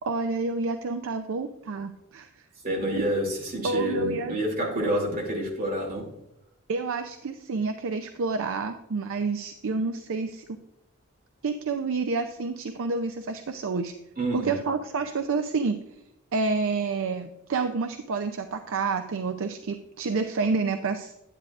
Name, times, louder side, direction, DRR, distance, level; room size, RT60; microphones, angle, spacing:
voice 1, 0.0-2.3 3.6-4.4 6.7-10.6 11.4-13.9 14.3-15.8 16.3-21.1, right 4 dB, 65° right, 8 dB, 0.5 m, -29 dB
voice 2, 2.6-6.1 14.2-14.6, equal, 40° right, -1 dB, 2.6 m, -28 dB
9.9 x 9.0 x 2.4 m, 0.90 s
head